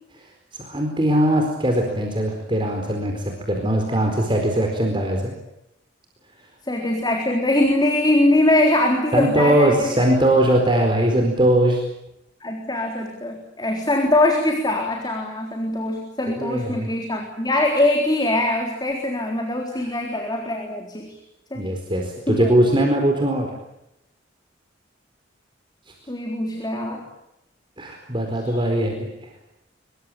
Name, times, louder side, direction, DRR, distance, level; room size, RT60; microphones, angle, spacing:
voice 1, 0.6-5.3 9.1-11.8 16.3-16.9 21.5-23.5 27.8-29.3, right 1 dB, 25° right, 2 dB, 4.5 m, -20 dB
voice 2, 6.6-10.1 12.4-21.2 21.5-21.7 22.3-22.5 26.1-27.0, left 1 dB, 20° left, 2 dB, 3.8 m, -22 dB
25.0 x 23.0 x 8.9 m, 0.84 s
head